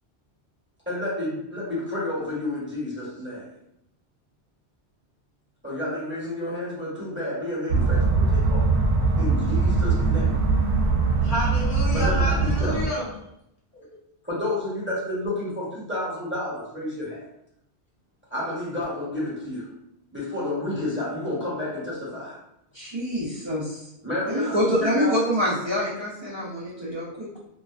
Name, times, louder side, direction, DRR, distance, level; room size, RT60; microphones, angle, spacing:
voice 1, 0.9-3.4 5.6-8.0 8.3-8.7 9.2-10.3 11.9-12.8 14.3-17.2 18.3-19.7 20.1-22.4 24.0-25.1, left 1 dB, 15° right, -9 dB, 0.6 m, -30 dB
sound 1, 7.7-12.9, right 3 dB, 75° right, 0.8 m, -21 dB
voice 2, 11.2-13.1 13.7-14.0, equal, 55° left, -5 dB, 0.7 m, -30 dB
voice 3, 22.7-23.8 24.3-27.4, equal, 50° right, -7 dB, 0.3 m, -26 dB
2.4 x 2.3 x 2.3 m, 0.80 s
omnidirectional pair, 1.2 m